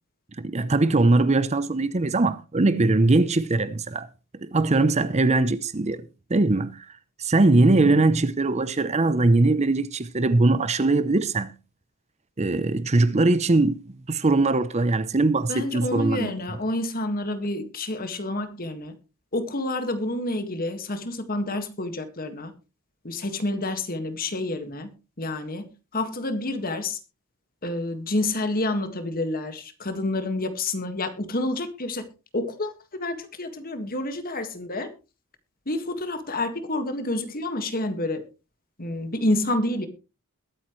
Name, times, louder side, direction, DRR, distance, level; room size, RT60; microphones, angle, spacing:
voice 1, 0.4-4.1 4.4-6.9 7.2-11.5 12.4-13.8 14.1-16.3, right 2 dB, 30° right, 0.6 m, -21 dB
voice 2, 15.5-19.0 19.3-22.5 23.0-27.0 27.6-32.1 32.3-32.7 33.0-34.9 35.7-38.2 38.8-39.9, left 2 dB, 40° left, 1.8 m, -28 dB
22.0 x 8.7 x 3.1 m
head